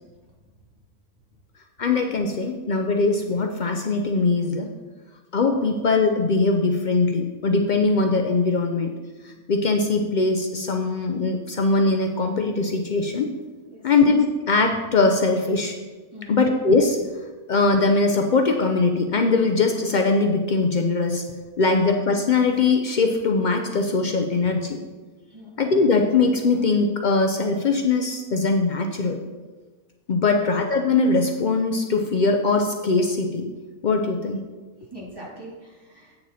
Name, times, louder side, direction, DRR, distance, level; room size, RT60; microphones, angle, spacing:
voice 1, 1.8-4.7 5.3-8.9 9.2-13.3 13.8-15.8 16.3-17.0 17.5-21.2 21.6-24.8 25.6-29.2 30.1-33.5 33.8-34.4, left 3 dB, 90° left, 4 dB, 0.4 m, -21 dB
voice 2, 16.1-16.4 25.3-25.6 30.3-30.4 34.9-36.2, equal, 15° right, -6 dB, 2.2 m, -42 dB
8.2 x 6.7 x 4.2 m, 1.3 s
omnidirectional pair, 1.6 m